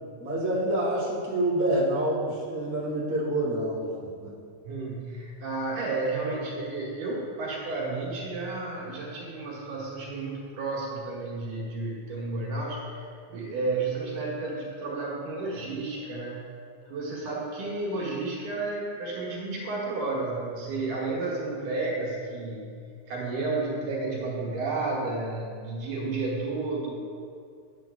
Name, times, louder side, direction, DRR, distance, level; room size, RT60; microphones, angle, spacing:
voice 1, 0.2-4.3, right 1 dB, 10° right, -8 dB, 0.8 m, -27 dB
voice 2, 4.6-16.5 16.9-22.7 23.1-26.9, right 3 dB, 85° right, -5 dB, 3.0 m, -32 dB
9.0 x 7.8 x 2.3 m, 2.3 s
omnidirectional pair, 3.5 m